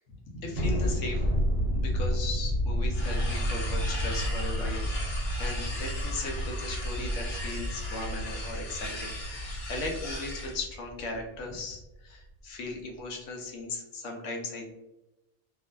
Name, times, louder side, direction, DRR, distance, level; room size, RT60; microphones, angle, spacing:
voice 1, 0.4-1.2 1.7-14.7, left 3 dB, 85° left, 1 dB, 1.0 m, -37 dB
Thunder, 0.6-11.2, equal, 60° right, 0.8 m, -31 dB
sound 1, 2.9-10.6, equal, 60° left, 0.9 m, -38 dB
2.5 x 2.3 x 2.3 m, 0.95 s
omnidirectional pair, 1.2 m